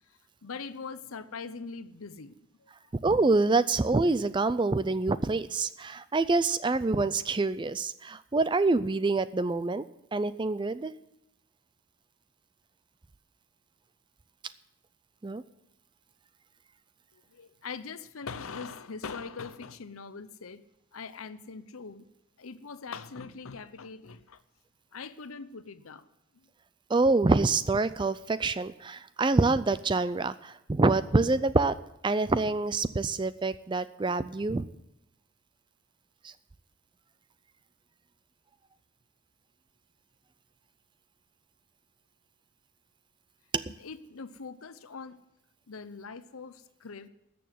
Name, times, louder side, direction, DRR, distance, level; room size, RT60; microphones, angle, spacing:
voice 1, 0.4-2.3 17.4-20.6 20.9-22.1 22.4-24.4 24.9-26.0 43.8-45.2 45.7-47.1, left 5 dB, 80° left, 14 dB, 0.7 m, -41 dB
voice 2, 3.0-9.8 10.1-10.9 15.2-15.4 26.9-31.8 32.0-34.7 36.2-36.3 43.5-43.6, right 3 dB, 20° right, 15 dB, 0.4 m, -26 dB
13.5 x 7.0 x 9.4 m, 0.86 s
head